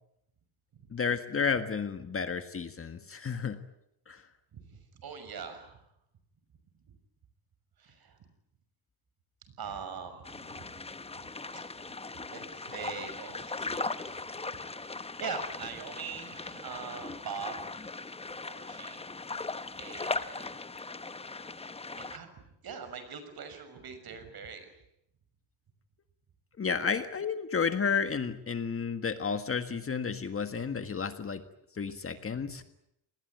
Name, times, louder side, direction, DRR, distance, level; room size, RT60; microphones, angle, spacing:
voice 1, 0.9-3.6 4.1-4.2 26.6-31.4 31.8-32.6, left 6 dB, 30° left, 9 dB, 1.7 m, -31 dB
voice 2, 4.5-5.8 7.8-8.2 9.6-10.6 11.5-11.6 12.3-14.4 14.8-17.7 18.5-19.0 19.7-20.6 22.0-22.3 22.6-24.7, right 6 dB, 50° right, 9 dB, 6.3 m, -42 dB
sound 1, 10.3-22.2, left 3 dB, 15° left, 1.0 m, -39 dB
28.0 x 20.0 x 9.5 m, 0.80 s
cardioid pair, 130°, 46 cm